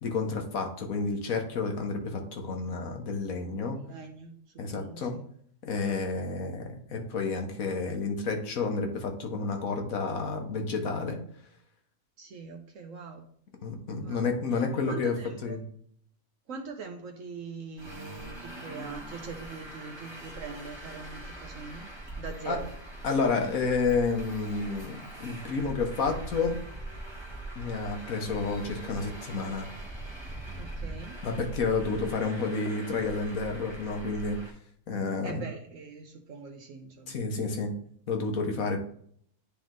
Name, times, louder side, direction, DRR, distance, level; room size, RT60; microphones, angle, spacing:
voice 1, 0.0-3.8 4.6-5.1 5.6-11.2 13.6-15.1 15.4-15.6 22.5-22.6 23.0-26.6 27.5-29.7 31.2-34.4 34.9-35.4 37.1-37.7 38.1-38.8, left 4 dB, 80° left, 4 dB, 1.6 m, -30 dB
voice 2, 3.7-5.2 12.2-13.3 14.0-14.3 14.9-15.6 16.5-21.9 22.2-22.7 30.6-31.2 35.2-37.2, right 4 dB, 70° right, 3 dB, 1.2 m, -42 dB
Traffic noise roadway noise, 17.8-34.5, right 1 dB, 20° right, 1.1 m, -42 dB
10.0 x 3.4 x 3.8 m, 0.62 s
omnidirectional pair, 1.4 m